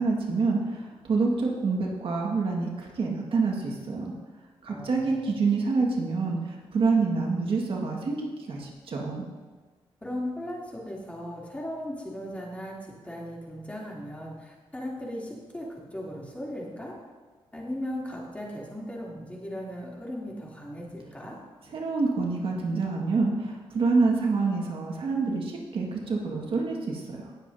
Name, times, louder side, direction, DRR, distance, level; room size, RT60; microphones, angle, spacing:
voice 1, 0.0-4.1 4.6-9.3 21.7-27.3, right 4 dB, 60° right, -1 dB, 1.6 m, -27 dB
voice 2, 4.7-5.4 10.0-12.7 13.0-16.9 17.5-21.4, left 1 dB, 15° left, -4 dB, 2.8 m, -37 dB
18.5 x 7.3 x 2.7 m, 1.4 s
cardioid pair, 105°, 10 cm